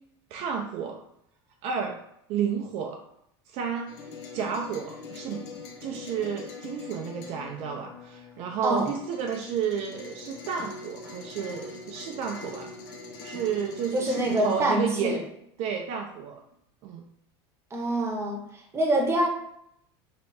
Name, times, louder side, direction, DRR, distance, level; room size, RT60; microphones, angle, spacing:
voice 1, 0.3-1.0 1.6-2.0 2.3-3.0 3.5-3.9 4.3-5.4 5.8-12.7 13.2-15.2 15.6-16.4 16.8-17.0, right 7 dB, 50° right, 2 dB, 0.6 m, -31 dB
sound 1, 3.9-14.7, left 3 dB, 60° left, 0.9 m, -42 dB
voice 2, 13.9-15.2 17.7-18.4 18.7-19.3, right 1 dB, 20° right, 1 dB, 1.0 m, -25 dB
3.3 x 3.0 x 4.2 m, 0.74 s
supercardioid pair, 120°, 14 cm